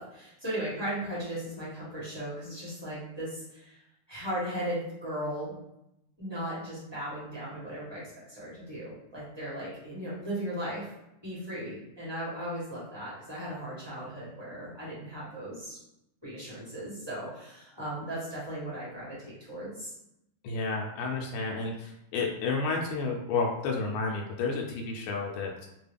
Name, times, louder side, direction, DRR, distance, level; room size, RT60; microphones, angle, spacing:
voice 1, 0.0-3.8 4.1-5.5 6.2-10.9 11.2-15.8 16.2-19.9, right 1 dB, 20° right, -9 dB, 0.8 m, -37 dB
voice 2, 20.4-25.7, left 4 dB, 85° left, 0 dB, 1.5 m, -31 dB
3.6 x 2.2 x 3.3 m, 0.85 s
omnidirectional pair, 2.3 m